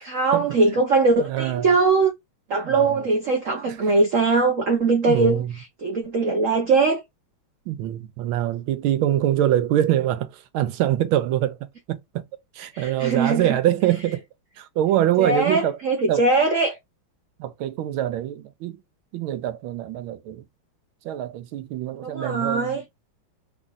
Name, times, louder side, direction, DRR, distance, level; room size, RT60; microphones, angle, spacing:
voice 1, 0.0-2.1 2.5-5.4 5.8-7.0 12.7-13.5 15.2-16.8 22.0-22.8, right 3 dB, 60° right, 0.8 m, -21 dB
voice 2, 1.0-1.7 2.6-3.1 3.7-3.8 5.1-5.5 7.7-11.6 11.9-12.0 12.5-14.2 14.6-15.8 16.1-16.2 17.4-18.8 19.1-20.4 21.0-22.8, right 12 dB, 80° right, 1.4 m, -24 dB
3.8 x 2.4 x 3.9 m
omnidirectional pair, 2.3 m